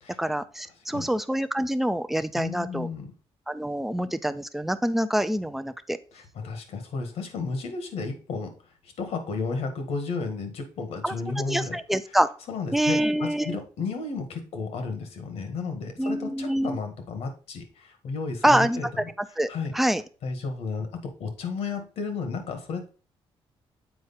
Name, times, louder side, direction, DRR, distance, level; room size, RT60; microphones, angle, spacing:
voice 1, 0.2-2.9 3.5-6.0 11.0-11.1 11.5-12.3 12.7-13.6 16.0-16.8 18.4-20.0, right 1 dB, ahead, 11 dB, 0.5 m, -26 dB
voice 2, 2.3-3.1 6.1-8.5 8.8-11.8 12.5-19.0 19.5-19.7 20.2-22.9, left 4 dB, 75° left, 6 dB, 1.6 m, -33 dB
7.9 x 4.7 x 4.1 m, 0.36 s
cardioid pair, 130°, 10 cm